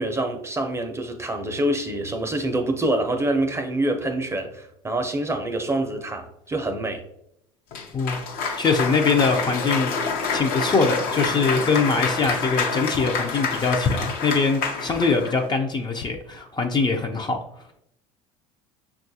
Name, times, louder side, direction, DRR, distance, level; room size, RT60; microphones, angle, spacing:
voice 1, 0.0-7.0, right 1 dB, 15° right, 5 dB, 0.6 m, -26 dB
Cheering / Applause, 7.7-15.4, left 5 dB, 60° left, 0.7 m, -27 dB
voice 2, 8.6-10.0 10.3-17.4, left 4 dB, 25° left, 3 dB, 0.5 m, -22 dB
5.7 x 2.3 x 2.7 m, 0.76 s
hypercardioid pair, 80°, 17 cm